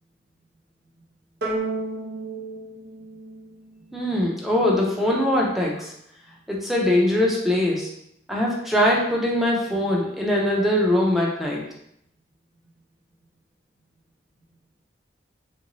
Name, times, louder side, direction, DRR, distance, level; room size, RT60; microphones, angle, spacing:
sound 1, 1.4-4.0, right 2 dB, 60° right, 0.7 m, -32 dB
voice 1, 3.9-5.9 6.5-7.9 8.3-11.6, left 1 dB, ahead, -3 dB, 0.5 m, -22 dB
3.7 x 2.6 x 3.0 m, 0.75 s
head